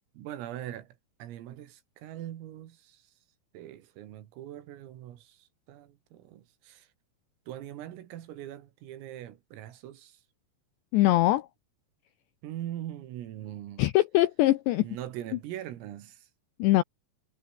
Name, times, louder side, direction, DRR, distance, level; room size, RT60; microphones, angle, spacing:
voice 1, 0.2-0.9 1.2-3.0 3.5-5.4 5.7-6.9 7.5-10.2 12.4-13.9 14.8-16.3, right 12 dB, 80° right, 4.7 m, -41 dB
voice 2, 10.9-11.5 13.8-14.9 16.6-16.8, left 16 dB, 80° left, 2.7 m, -22 dB
omnidirectional pair, 5.9 m